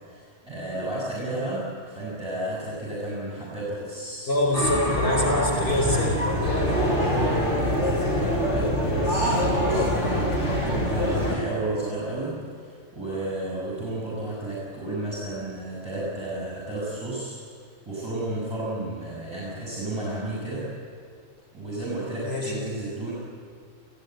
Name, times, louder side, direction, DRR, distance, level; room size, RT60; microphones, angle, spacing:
voice 1, 0.1-4.7 6.5-17.4 17.8-20.7 21.5-23.1, right 1 dB, 20° right, -6 dB, 6.7 m, -32 dB
voice 2, 4.3-6.2 22.2-22.5, left 1 dB, 55° left, -2 dB, 4.4 m, -24 dB
sound 1, 4.5-11.4, equal, 75° left, 7.7 m, -24 dB
30.0 x 16.0 x 9.2 m, 2.2 s
omnidirectional pair, 1.2 m